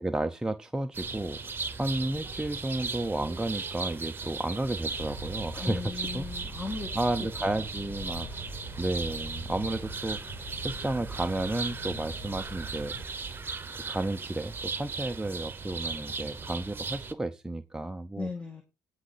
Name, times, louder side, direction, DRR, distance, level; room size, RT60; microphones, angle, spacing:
voice 1, 0.0-6.2 7.0-8.3 8.8-12.9 13.7-18.3, right 1 dB, 10° right, 0.6 m, -32 dB
sound 1, 0.9-17.1, right 4 dB, 25° right, 1.1 m, -37 dB
sound 2, 4.9-13.1, equal, 50° left, 3.0 m, -43 dB
voice 2, 5.6-6.9 7.6-7.7 18.2-18.6, left 4 dB, 15° left, 1.9 m, -37 dB
16.0 x 5.7 x 4.0 m
cardioid pair, 95°, 8 cm